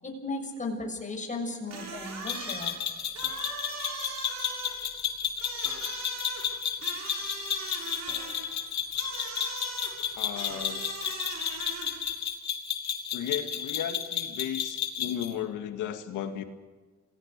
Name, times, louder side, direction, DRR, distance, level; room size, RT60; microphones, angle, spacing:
voice 1, 0.0-2.8, left 2 dB, 25° left, 2 dB, 6.5 m, -35 dB
sound 1, 1.4-1.8 3.2-4.0 5.6-6.5 8.1-9.0 10.5-11.1, left 1 dB, ahead, 7.4 m, -54 dB
sound 2, 1.7-12.1, right 4 dB, 60° right, 6.1 m, -41 dB
sound 3, 2.3-15.3, left 8 dB, 70° left, 2.5 m, -32 dB
voice 2, 10.2-10.8 13.1-16.4, left 10 dB, 90° left, 7 dB, 2.2 m, -35 dB
27.0 x 18.5 x 6.8 m, 1.3 s
cardioid pair, 90°, 30 cm